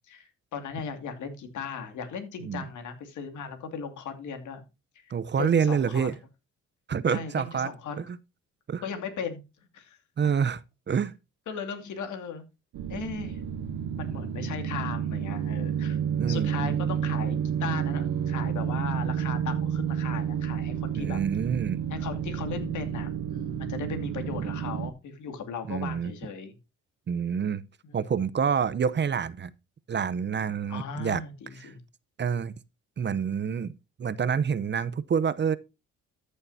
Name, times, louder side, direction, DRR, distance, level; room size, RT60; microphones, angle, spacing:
voice 1, 0.1-4.6 5.0-5.1 5.3-6.1 7.1-8.0 8.8-9.4 9.7-10.0 11.5-12.4 12.9-13.4 14.0-16.0 16.3-21.2 21.9-26.6 30.7-31.8, left 6 dB, 75° left, 2.5 m, -37 dB
voice 2, 5.1-6.2 6.9-8.2 8.7-8.8 10.2-10.6 10.9-11.1 16.2-16.7 21.0-21.8 25.7-26.1 27.1-27.6 27.9-29.5 29.9-31.2 31.6-31.7 32.2-32.5 33.0-33.7 34.0-35.6, right 7 dB, 35° right, 0.7 m, -27 dB
sound 1, 12.7-24.9, right 8 dB, 90° right, 1.0 m, -30 dB
14.0 x 6.6 x 2.7 m
cardioid pair, 90°, 30 cm